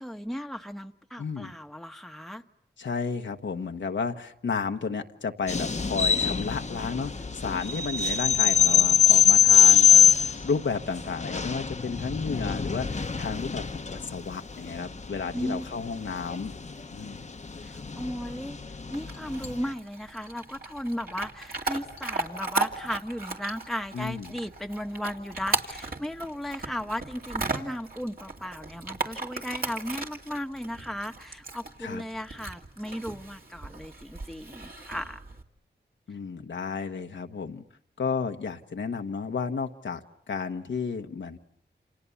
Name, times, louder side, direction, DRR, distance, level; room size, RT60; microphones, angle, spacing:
voice 1, 0.0-2.4 15.3-15.7 17.6-18.6 18.9-35.2, equal, ahead, 5 dB, 1.1 m, -36 dB
voice 2, 1.2-1.5 2.8-16.5 16.9-17.3 23.9-24.3 31.8-32.0 36.1-37.6 38.0-41.4, left 5 dB, 80° left, 5 dB, 1.2 m, -32 dB
sound 1, 5.5-19.6, left 7 dB, 40° left, 1.0 m, -23 dB
Chewing mastication / Dog, 18.9-35.4, right 3 dB, 55° right, 2.6 m, -36 dB
29.0 x 27.5 x 7.1 m, 0.77 s
cardioid pair, 60°, 19 cm